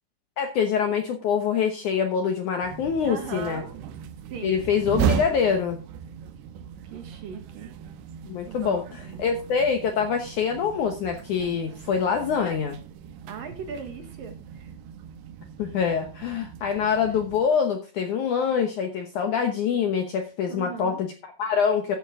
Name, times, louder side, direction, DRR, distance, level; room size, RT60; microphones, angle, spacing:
voice 1, 0.4-3.6 4.4-5.8 8.2-12.8 15.6-22.0, left 6 dB, 70° left, 5 dB, 1.9 m, -25 dB
sound 1, 2.6-17.4, right 8 dB, 85° right, 3.2 m, -36 dB
voice 2, 3.0-3.8 4.3-4.6 6.8-7.7 8.5-9.4 13.3-14.7 20.5-21.0, right 6 dB, 60° right, 6 dB, 2.8 m, -39 dB
13.5 x 9.2 x 3.7 m, 0.31 s
omnidirectional pair, 4.9 m